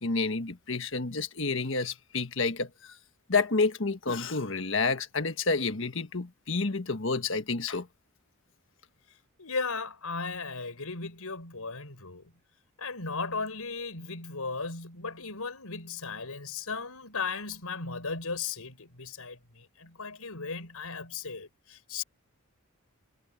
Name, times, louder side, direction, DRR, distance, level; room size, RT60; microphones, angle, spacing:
voice 1, 0.0-3.0 3.3-7.9, left 4 dB, 55° left, 1.5 m, -29 dB
voice 2, 9.4-12.3 12.8-22.0, left 4 dB, 85° left, 5.2 m, -36 dB
head